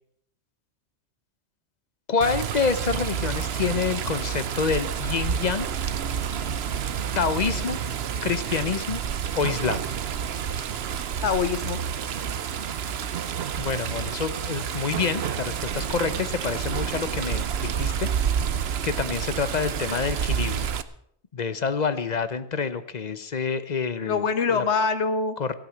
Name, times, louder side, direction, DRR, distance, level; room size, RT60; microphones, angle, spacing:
voice 1, 2.1-5.7 7.2-7.8 8.2-9.0 9.3-9.9 13.6-18.4 18.8-20.7 21.3-24.2 24.5-24.6 25.4-25.5, left 5 dB, 40° left, 13 dB, 0.9 m, -27 dB
Water, 2.2-20.8, right 8 dB, 65° right, 1.0 m, -29 dB
voice 2, 11.2-11.8 24.1-25.4, left 5 dB, 80° left, 12 dB, 1.4 m, -24 dB
16.0 x 9.0 x 7.3 m, 0.67 s
omnidirectional pair, 1.1 m